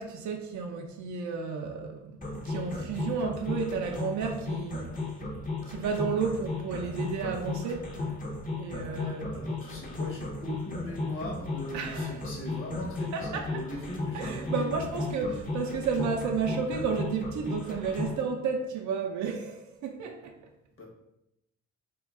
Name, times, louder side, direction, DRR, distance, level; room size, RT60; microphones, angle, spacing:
voice 1, 0.0-5.0 5.7-7.9 8.5-9.4 11.7-12.3 13.1-13.6 14.1-20.3, right 5 dB, 70° right, 0.5 m, -32 dB
sound 1, 2.2-18.2, left 3 dB, 25° left, 0.7 m, -35 dB
voice 2, 9.0-14.6 15.1-15.2 20.8-20.9, equal, 45° left, 1.2 m, -39 dB
2.8 x 2.3 x 3.5 m
cardioid pair, 90°, 30 cm